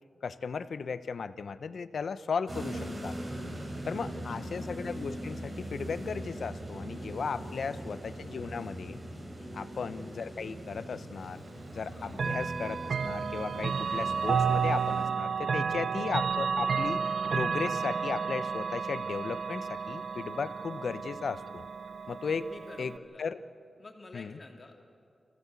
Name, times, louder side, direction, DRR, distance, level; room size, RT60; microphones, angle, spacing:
voice 1, 0.2-3.2 3.9-9.0 9.5-11.4 11.7-17.0 17.3-21.6 22.1-22.5 22.8-22.9 23.2-23.4 24.1-24.4, left 5 dB, 80° left, 13 dB, 0.7 m, -36 dB
sound 1, 2.5-15.1, right 1 dB, 45° right, 5.1 m, -41 dB
voice 2, 3.7-4.4 7.3-7.6 9.4-9.6 11.9-12.1 15.7-15.9 22.3-23.2 23.8-24.8, left 2 dB, 40° left, 2 dB, 2.7 m, -50 dB
Chime / Clock, 12.1-23.0, right 6 dB, 80° right, 0.7 m, -31 dB
26.0 x 16.5 x 8.3 m, 2.4 s
wide cardioid pair, 90°, 0 cm